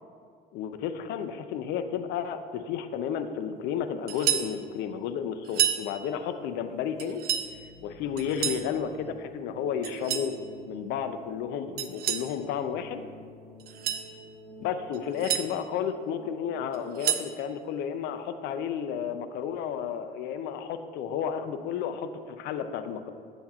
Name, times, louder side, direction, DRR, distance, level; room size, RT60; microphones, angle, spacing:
voice 1, 0.5-7.2 7.8-10.3 10.7-13.1 14.6-23.1, left 8 dB, 85° left, 9 dB, 0.5 m, -32 dB
sound 1, 4.1-4.5 5.5-5.8 7.0-7.5 8.2-8.7 9.8-10.3 11.8-12.3 13.6-14.1 14.9-15.5 16.7-17.3, right 10 dB, 65° right, 0.5 m, -29 dB
sound 2, 7.4-17.1, right 2 dB, 20° left, 1.5 m, -48 dB
8.8 x 7.1 x 2.4 m, 2.2 s
cardioid pair, 110°, 17 cm